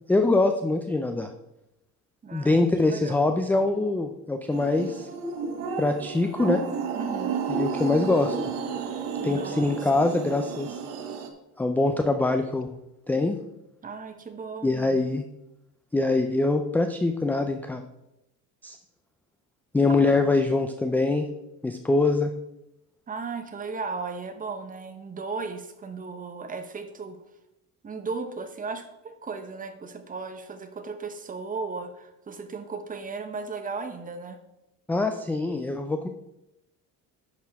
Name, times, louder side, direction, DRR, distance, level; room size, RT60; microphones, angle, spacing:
voice 1, 0.1-1.3 2.3-5.1 5.8-6.6 7.5-8.4 9.2-10.8 11.6-12.7 13.1-13.4 14.6-15.2 15.9-17.8 18.6-18.8 19.7-21.3 21.6-22.3 34.9-36.1, left 2 dB, 5° left, 6 dB, 0.4 m, -24 dB
voice 2, 2.2-3.2 6.9-7.5 9.2-9.9 13.8-15.0 19.9-20.2 23.1-27.2 27.8-34.4, right 4 dB, 25° right, 8 dB, 1.0 m, -36 dB
sound 1, 4.5-11.3, right 6 dB, 90° right, 1.3 m, -32 dB
10.0 x 6.6 x 3.5 m, 0.89 s
cardioid pair, 130°, 35 cm